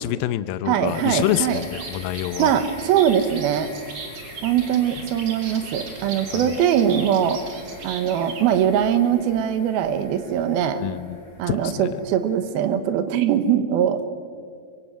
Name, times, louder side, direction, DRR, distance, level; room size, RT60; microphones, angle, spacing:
voice 1, 0.0-2.5 6.3-6.6 10.7-11.2 11.5-12.0, left 13 dB, 80° left, 15 dB, 2.3 m, -27 dB
voice 2, 0.7-1.6 2.4-3.7 4.4-7.4 7.8-10.8 11.4-14.1, right 9 dB, 75° right, 10 dB, 2.9 m, -21 dB
sound 1, 0.9-12.8, left 2 dB, 55° left, 6.1 m, -44 dB
sound 2, 1.0-8.4, right 4 dB, 45° right, 3.0 m, -38 dB
23.5 x 23.5 x 6.3 m, 2.2 s
omnidirectional pair, 4.5 m